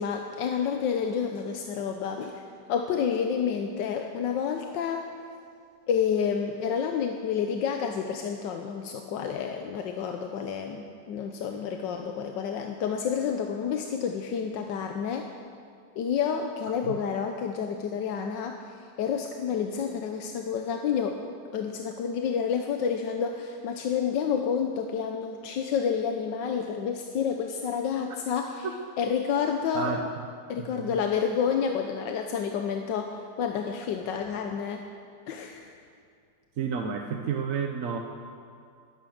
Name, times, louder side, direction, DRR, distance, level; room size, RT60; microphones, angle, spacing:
voice 1, 0.0-2.4 2.7-5.1 5.9-15.2 16.0-18.6 19.0-21.2 21.5-28.7 29.0-29.9 30.5-34.8 35.3-35.7, left 7 dB, 85° left, 4 dB, 1.5 m, -29 dB
voice 2, 29.7-30.3 30.6-31.0 36.6-38.0, right 6 dB, 55° right, 3 dB, 1.1 m, -31 dB
21.0 x 9.6 x 6.4 m, 2.3 s
omnidirectional pair, 1.9 m